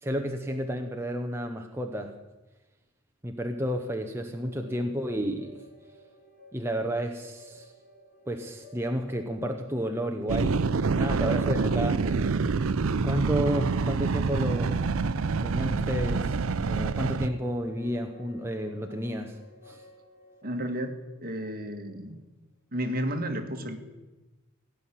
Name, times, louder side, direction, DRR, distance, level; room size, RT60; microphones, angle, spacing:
voice 1, 0.0-2.1 3.2-5.6 6.5-7.7 8.3-12.3 13.0-14.8 15.4-16.3 16.6-19.4 19.6-19.8, equal, 10° right, 4 dB, 0.8 m, -31 dB
sound 1, 4.1-21.9, left 2 dB, 50° left, 3.3 m, -53 dB
sound 2, 10.3-17.3, right 4 dB, 70° right, 0.5 m, -26 dB
voice 2, 20.4-22.2 22.7-23.8, equal, 45° right, 6 dB, 1.6 m, -32 dB
17.0 x 5.8 x 10.0 m, 1.1 s
head